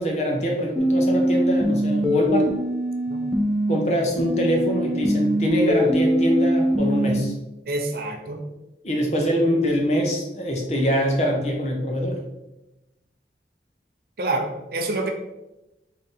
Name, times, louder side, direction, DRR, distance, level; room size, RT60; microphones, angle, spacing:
voice 1, 0.0-2.5 3.7-7.3 8.8-12.2, equal, 40° left, 0 dB, 0.8 m, -23 dB
sound 1, 0.8-3.8 4.2-7.2, equal, ahead, 0.4 m, -22 dB
voice 2, 7.7-8.4 14.2-15.1, right 2 dB, 55° right, 4 dB, 0.5 m, -27 dB
3.8 x 2.8 x 3.8 m, 0.96 s
head